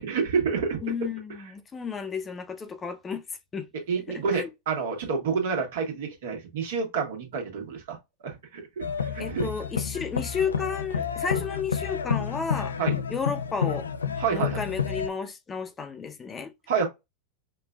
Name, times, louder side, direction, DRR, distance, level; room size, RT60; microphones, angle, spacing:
voice 1, 0.0-0.8 3.9-8.0 8.2-9.5 12.8-13.0 14.2-14.6 16.7-16.8, right 5 dB, 70° right, 1.4 m, -28 dB
voice 2, 0.8-3.2 3.5-3.7 4.1-4.5 9.2-12.7 13.1-13.9 14.3-16.5, left 6 dB, 25° left, 0.7 m, -32 dB
sound 1, 8.8-15.1, left 7 dB, 90° left, 0.4 m, -30 dB
5.2 x 2.4 x 2.3 m
hypercardioid pair, 95°, 0 cm